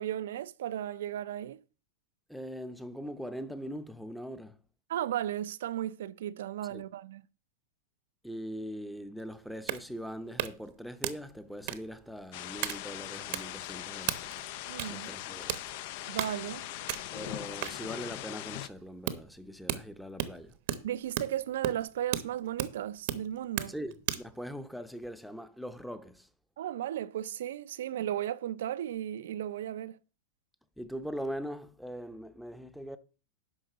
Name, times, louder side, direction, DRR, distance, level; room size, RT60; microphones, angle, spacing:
voice 1, 0.0-1.6 4.9-7.2 14.7-15.1 16.1-16.7 20.8-23.7 26.6-30.0, right 11 dB, 75° right, 0.5 m, -35 dB
voice 2, 2.3-4.6 6.7-6.8 8.2-14.4 14.9-15.5 17.1-20.6 23.7-26.3 30.8-33.0, equal, ahead, 0.7 m, -41 dB
sound 1, 9.2-24.4, right 13 dB, 55° right, 0.9 m, -38 dB
sound 2, 12.3-18.7, left 14 dB, 55° left, 0.5 m, -40 dB
11.0 x 3.9 x 6.7 m
supercardioid pair, 145°, 0 cm